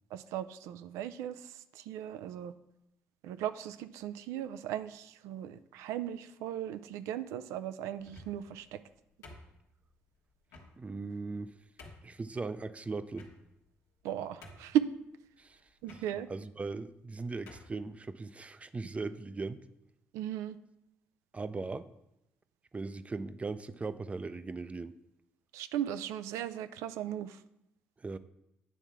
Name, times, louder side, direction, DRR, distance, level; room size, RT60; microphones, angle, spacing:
voice 1, 0.1-1.4 1.8-2.5 3.2-8.8 14.0-14.9 15.8-16.3 20.1-20.6 25.5-27.4, right 11 dB, 85° right, 13 dB, 0.3 m, -36 dB
sound 1, 8.0-8.5 9.2-9.9 10.5-10.7 11.3-11.4 11.8-12.1 13.1-13.7 14.0-14.1 14.4-14.9 15.8-16.1 16.9-17.1 17.5-17.8, left 2 dB, 85° left, 1.1 m, -51 dB
voice 2, 10.8-11.5 12.0-13.3 15.4-15.6 15.9-16.0 16.3-19.6 21.3-21.9 22.7-25.0 28.0-28.2, right 3 dB, 25° right, 13 dB, 0.4 m, -39 dB
9.1 x 3.5 x 5.8 m, 0.86 s
supercardioid pair, 65°, 5 cm